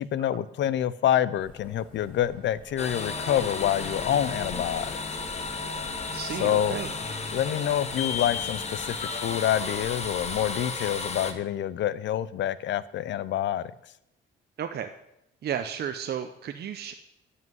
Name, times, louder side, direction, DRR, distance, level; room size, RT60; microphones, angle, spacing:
voice 1, 0.0-5.0 6.4-6.8 7.3-13.7, left 11 dB, 65° left, 17 dB, 0.6 m, -27 dB
sound 1, 1.4-10.6, right 1 dB, 5° left, 4.3 m, -49 dB
sound 2, 2.8-11.3, left 4 dB, 35° left, 1.3 m, -33 dB
voice 2, 6.1-6.9 14.6-14.9 15.4-16.9, right 9 dB, 55° right, 7 dB, 0.7 m, -33 dB
11.0 x 5.6 x 7.8 m, 0.85 s
cardioid pair, 90°, 20 cm